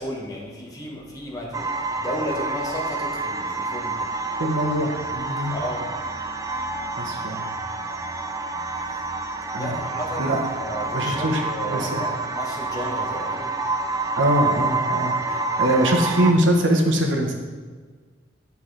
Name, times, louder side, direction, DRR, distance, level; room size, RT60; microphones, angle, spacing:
voice 1, 0.0-4.1 5.5-5.9 9.5-13.6, equal, 20° left, -1 dB, 1.3 m, -33 dB
sound 1, 1.5-16.3, right 3 dB, 20° right, 0.4 m, -28 dB
voice 2, 4.4-5.5 7.0-7.4 9.5-9.7 10.2-10.4 10.9-11.4 11.7-12.1 14.2-17.3, right 1 dB, 80° right, 2 dB, 1.1 m, -22 dB
9.6 x 5.8 x 3.3 m, 1.5 s
head